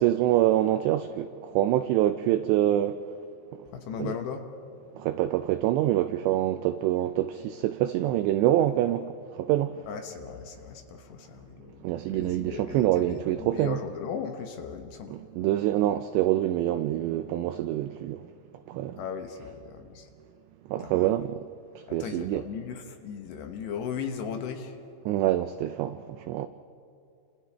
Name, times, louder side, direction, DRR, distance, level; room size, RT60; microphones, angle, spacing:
voice 1, 0.0-3.0 3.6-3.7 4.0-4.1 5.0-9.8 11.8-13.8 15.1-18.3 18.7-19.0 20.7-21.4 21.9-22.4 25.1-26.5, right 13 dB, 85° right, 2.5 m, -26 dB
voice 2, 3.7-4.5 9.9-15.2 18.9-20.1 20.8-21.2 21.9-24.8, left 7 dB, 70° left, 3.0 m, -37 dB
29.5 x 27.0 x 3.4 m
omnidirectional pair, 5.6 m